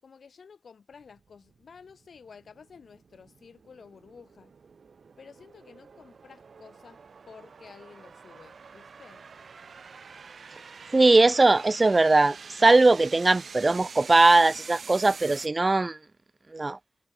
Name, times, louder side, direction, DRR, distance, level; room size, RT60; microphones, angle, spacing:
voice 1, 0.0-4.5 5.2-7.0 7.3-9.3, left 5 dB, 80° left, 7.4 m, -51 dB
sound 1, 0.9-15.5, right 5 dB, 70° right, 4.5 m, -47 dB
voice 2, 10.9-12.4 12.6-16.0 16.5-16.8, right 2 dB, 30° right, 0.3 m, -20 dB
wide cardioid pair, 115°, 0 cm